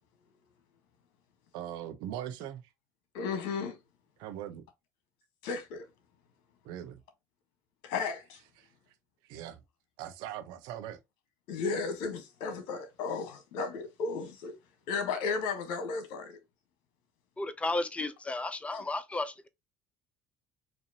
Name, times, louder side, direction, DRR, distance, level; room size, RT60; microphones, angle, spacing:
voice 1, 1.5-2.6 4.2-4.6 6.6-7.0 8.6-8.7 9.3-9.6 10.0-11.0, right 11 dB, 80° right, 0.7 m, -40 dB
voice 2, 3.1-3.8 5.4-5.9 7.8-8.4 11.5-14.5 14.9-16.4 18.7-18.8, left 5 dB, 80° left, 1.1 m, -34 dB
voice 3, 17.4-19.5, left 2 dB, 15° left, 0.7 m, -33 dB
4.2 x 2.6 x 2.7 m
supercardioid pair, 85°, 7 cm